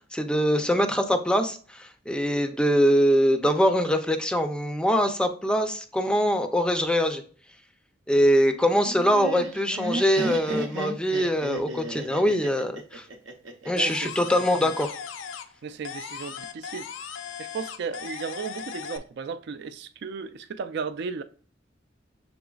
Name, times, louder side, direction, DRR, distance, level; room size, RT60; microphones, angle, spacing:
voice 1, 0.1-7.2 8.1-13.1 13.7-14.9, equal, 5° left, 0.4 m, -23 dB
Laughter, 8.8-13.9, right 2 dB, 80° right, 0.7 m, -33 dB
sound 1, 13.8-15.6 15.8-19.0, left 7 dB, 85° left, 0.5 m, -38 dB
voice 2, 13.8-14.1 14.6-14.7 15.6-16.9 17.4-21.2, right 5 dB, 60° right, 0.3 m, -35 dB
6.1 x 3.8 x 2.3 m
head